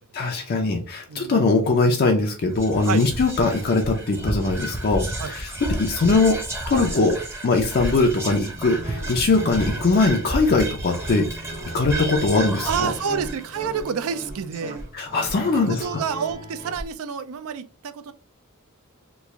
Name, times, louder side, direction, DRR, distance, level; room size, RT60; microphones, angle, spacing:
voice 1, 0.1-5.5 5.8-6.4 6.7-7.2 7.4-11.3 11.7-12.7 14.9-15.8, left 3 dB, 45° left, 2 dB, 0.5 m, -21 dB
voice 2, 1.1-1.4 2.8-3.0 5.2-5.3 12.6-14.8 15.7-18.1, right 7 dB, 70° right, 11 dB, 0.4 m, -28 dB
Whispering, 2.5-15.0, right 1 dB, 10° right, 0.7 m, -32 dB
Guitar, 8.5-16.8, right 1 dB, 35° right, 0.9 m, -38 dB
3.1 x 2.5 x 3.5 m, 0.35 s
head